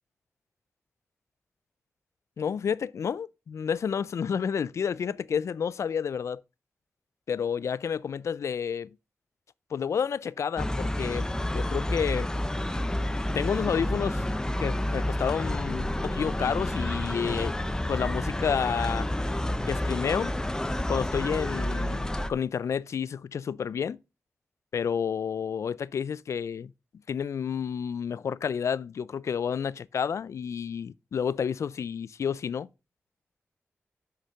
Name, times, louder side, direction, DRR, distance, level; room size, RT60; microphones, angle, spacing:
voice 1, 2.4-6.4 7.3-8.9 9.7-12.3 13.3-14.2 14.6-17.5 17.9-19.1 19.7-20.3 20.9-24.0 24.7-26.7 27.1-32.7, left 7 dB, 80° left, 0.3 m, -30 dB
sound 1, 10.6-22.3, left 1 dB, 15° left, 0.7 m, -29 dB
6.5 x 5.7 x 6.2 m
wide cardioid pair, 90°, 5 cm